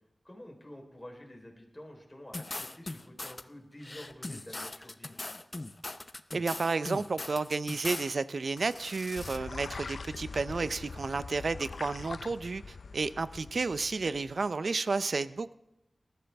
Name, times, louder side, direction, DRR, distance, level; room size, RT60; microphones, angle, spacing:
voice 1, 0.2-5.2, left 1 dB, 20° left, 1 dB, 3.9 m, -49 dB
sound 1, 2.3-3.4 3.8-8.1 8.5-9.4, left 2 dB, 35° left, 0.7 m, -40 dB
voice 2, 6.3-15.5, right 4 dB, 75° right, 15 dB, 0.5 m, -32 dB
sound 2, 9.2-14.4, left 4 dB, 80° left, 0.5 m, -43 dB
20.0 x 13.5 x 3.5 m, 0.87 s
wide cardioid pair, 60°, 0 cm